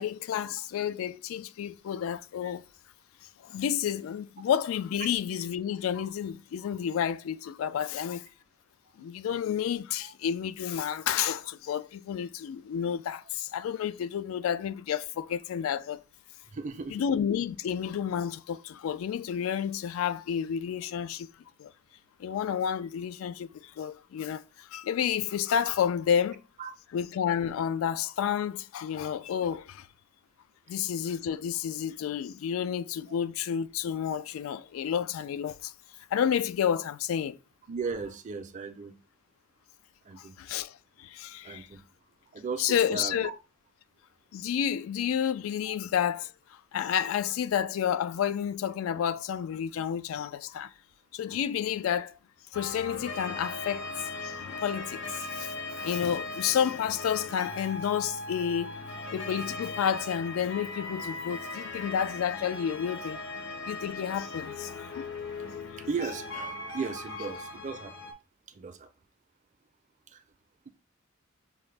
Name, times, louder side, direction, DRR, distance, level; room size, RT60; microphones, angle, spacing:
voice 1, 0.0-2.6 3.4-8.2 9.0-16.0 16.9-21.3 21.6-21.7 22.2-26.4 26.9-29.9 30.7-35.7 36.1-37.4 40.2-41.7 42.6-43.3 44.3-50.7 51.1-52.2 52.5-53.9 54.2-58.8 59.1-63.2 63.7-65.1, left 8 dB, 85° left, 0.3 m, -30 dB
voice 2, 16.5-17.0 26.6-26.7 37.7-39.0 40.0-40.4 41.4-41.8 42.3-43.3 45.6-45.7 65.8-68.1 68.5-68.9 70.1-70.2, right 5 dB, 35° right, 0.4 m, -36 dB
sound 1, 52.5-68.1, left 3 dB, 60° left, 0.7 m, -39 dB
5.7 x 2.0 x 3.2 m
head